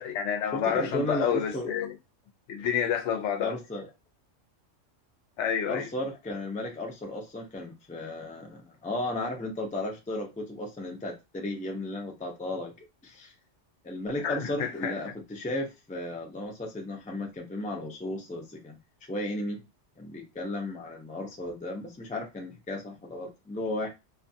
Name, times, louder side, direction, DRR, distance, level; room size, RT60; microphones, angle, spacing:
voice 1, 0.0-1.9 2.5-3.5 5.4-5.9 14.2-14.9, left 8 dB, 70° left, 0.9 m, -29 dB
voice 2, 0.5-1.7 3.4-3.9 5.7-12.7 13.0-13.3 13.8-18.8 19.1-19.6 20.0-23.9, left 1 dB, 10° left, 0.3 m, -34 dB
2.5 x 2.3 x 2.6 m
omnidirectional pair, 1.3 m